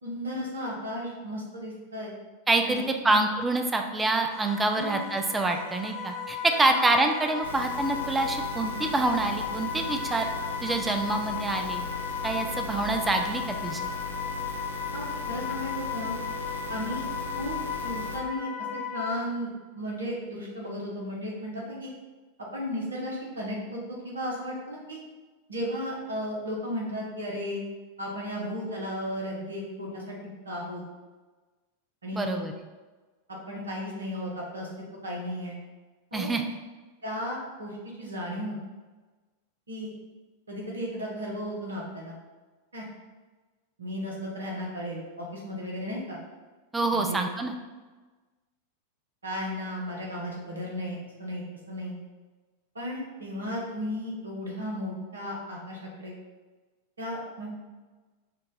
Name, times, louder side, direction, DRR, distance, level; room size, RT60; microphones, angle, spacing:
voice 1, 0.0-2.1 2.6-3.2 4.7-5.0 6.6-6.8 14.9-16.2 16.7-17.1 17.4-17.5 17.8-18.5 18.9-19.5 19.7-21.9 22.4-25.0 25.5-27.6 28.0-30.8 32.0-32.4 33.3-34.7 35.0-35.6 36.1-36.3 37.0-38.6 39.7-39.9 40.5-42.2 42.7-42.8 43.8-46.2 46.9-47.3 49.2-51.9 52.7-56.1 57.0-57.5, equal, 70° right, -3 dB, 1.1 m, -34 dB
voice 2, 2.5-10.3 10.6-11.8 12.2-13.8 32.1-32.5 36.1-36.4 46.7-47.5, right 2 dB, 10° right, 5 dB, 0.4 m, -26 dB
sound 1, 4.3-19.1, left 6 dB, 30° left, 0.9 m, -35 dB
sound 2, 7.4-18.2, left 2 dB, 75° left, 0.5 m, -38 dB
4.5 x 2.5 x 3.9 m, 1.3 s
figure-of-eight pair, 90°, 0 cm